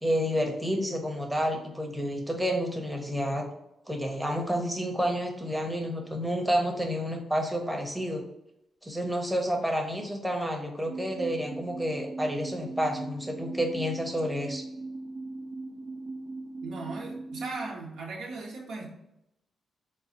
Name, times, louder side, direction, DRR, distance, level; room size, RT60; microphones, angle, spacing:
voice 1, 0.0-3.4 3.9-8.2 8.8-14.6, equal, 5° right, 1 dB, 0.8 m, -30 dB
sound 1, 10.9-17.7, right 2 dB, 70° right, 0.3 m, -39 dB
voice 2, 16.6-18.9, right 3 dB, 85° right, -2 dB, 1.0 m, -38 dB
4.0 x 2.3 x 3.8 m, 0.84 s
cardioid pair, 100°, 0 cm